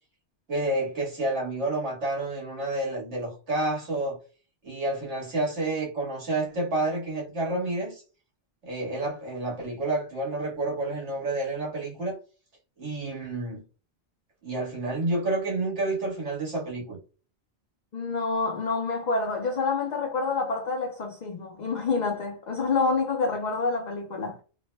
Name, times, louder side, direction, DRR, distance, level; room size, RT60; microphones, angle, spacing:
voice 1, 0.5-4.2 4.6-8.0 8.6-12.2 12.8-13.6 14.4-17.0, right 2 dB, 80° right, 1.8 m, -29 dB
voice 2, 17.9-24.4, left 4 dB, 50° left, 0.6 m, -27 dB
3.4 x 2.1 x 3.1 m
omnidirectional pair, 1.2 m